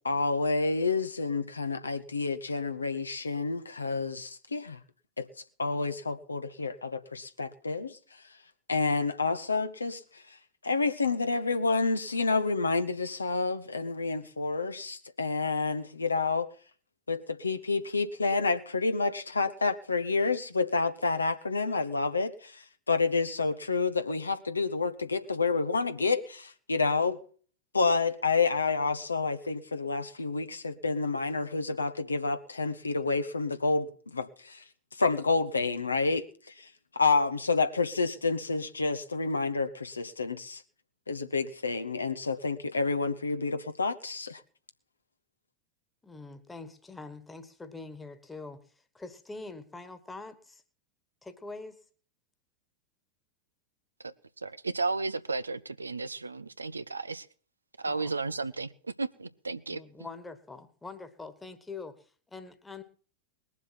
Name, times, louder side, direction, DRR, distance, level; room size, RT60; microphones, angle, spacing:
voice 1, 0.0-4.8 5.2-5.3 5.6-8.2 8.7-10.4 10.6-16.5 17.1-27.2 27.7-34.6 34.9-40.6 41.1-44.4, left 4 dB, 75° left, 1.1 m, -29 dB
voice 2, 46.0-48.6 48.9-50.6 51.2-51.8 57.8-58.1 59.7-62.8, left 3 dB, 10° left, 1.6 m, -44 dB
voice 3, 54.0-57.3 57.8-59.8, right 3 dB, 80° right, 0.6 m, -34 dB
20.5 x 7.4 x 5.9 m
figure-of-eight pair, 90°, 0 cm